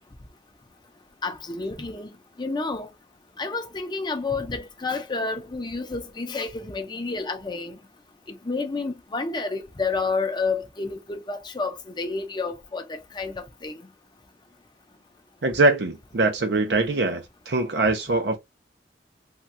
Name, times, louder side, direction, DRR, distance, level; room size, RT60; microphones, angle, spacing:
voice 1, 1.2-2.1 2.4-2.9 3.4-7.8 8.4-13.7, left 3 dB, 25° left, 0.6 m, -30 dB
voice 2, 15.4-18.4, right 2 dB, 65° right, 0.6 m, -22 dB
3.5 x 2.3 x 2.7 m
head